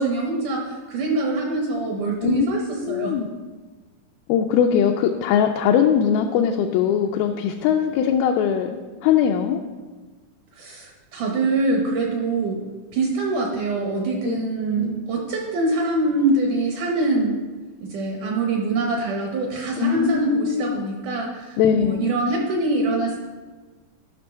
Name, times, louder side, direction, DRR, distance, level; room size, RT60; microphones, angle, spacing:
voice 1, 0.0-2.6 2.9-3.2 10.5-12.6 12.9-17.4 17.8-23.2, right 2 dB, 70° right, 0 dB, 2.0 m, -24 dB
voice 2, 2.8-3.3 4.3-9.6 14.2-14.4 14.8-15.0 19.8-20.8 21.6-22.1, left 8 dB, 85° left, 3 dB, 2.1 m, -21 dB
12.5 x 6.0 x 4.4 m, 1.4 s
omnidirectional pair, 4.7 m